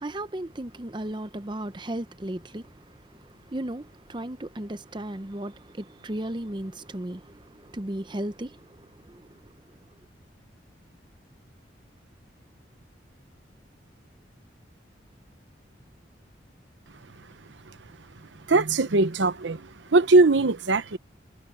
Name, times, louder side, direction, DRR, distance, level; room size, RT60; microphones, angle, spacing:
voice 1, 0.0-2.7 3.5-8.6 9.1-9.2, right 1 dB, 25° right, 0.7 m, -35 dB
voice 2, 18.5-19.6 19.9-21.0, right 3 dB, 80° right, 0.9 m, -20 dB
head